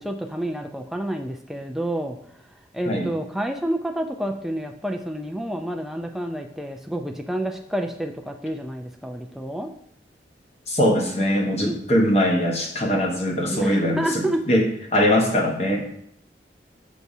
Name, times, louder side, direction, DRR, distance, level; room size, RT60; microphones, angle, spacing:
voice 1, 0.0-2.2 2.7-9.7 11.6-11.8 13.5-14.4, right 1 dB, ahead, 3 dB, 0.4 m, -29 dB
voice 2, 10.7-15.8, equal, 35° left, 1 dB, 1.0 m, -21 dB
6.7 x 6.0 x 2.7 m, 0.71 s
head